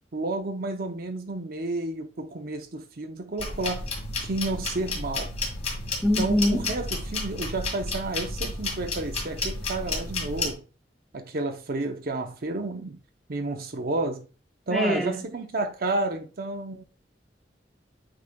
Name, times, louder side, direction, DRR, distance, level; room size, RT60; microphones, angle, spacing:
voice 1, 0.1-3.9 4.2-5.3 6.2-10.6 11.1-13.0 13.3-14.3 14.7-16.8, right 2 dB, 55° right, 0.7 m, -31 dB
sound 1, 3.4-10.5, left 2 dB, 40° left, 2.0 m, -32 dB
voice 2, 6.0-6.7 14.7-15.2, left 1 dB, ahead, 1.1 m, -23 dB
8.5 x 4.9 x 2.2 m
head